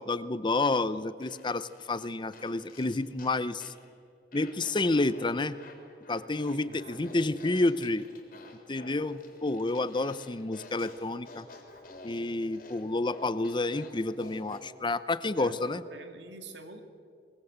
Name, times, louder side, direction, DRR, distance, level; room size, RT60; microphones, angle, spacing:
voice 1, 0.0-3.7 4.3-5.6 6.1-8.1 8.7-11.5 12.0-15.8, left 2 dB, 25° left, 15 dB, 0.7 m, -29 dB
Fart, 1.2-3.9 4.3-14.7, left 2 dB, 55° left, 3.8 m, -50 dB
voice 2, 6.4-7.1 15.3-16.8, right 2 dB, 85° right, 6 dB, 2.4 m, -45 dB
21.5 x 21.5 x 8.0 m, 2.3 s
head